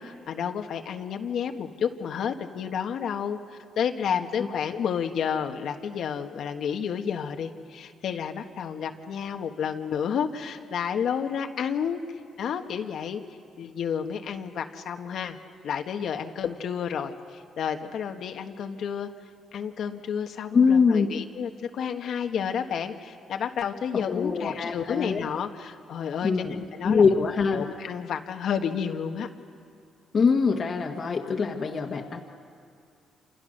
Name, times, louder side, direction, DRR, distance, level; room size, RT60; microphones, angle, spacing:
voice 1, 0.0-12.0 12.4-13.2 13.6-15.4 15.6-19.1 19.5-27.0 27.5-29.3, left 7 dB, 70° left, 5 dB, 1.5 m, -31 dB
voice 2, 20.5-21.1 23.9-25.3 26.2-27.6 30.1-32.2, left 5 dB, 45° left, 1 dB, 1.7 m, -23 dB
28.0 x 27.5 x 6.6 m, 2.3 s
cardioid pair, 90°, 0 cm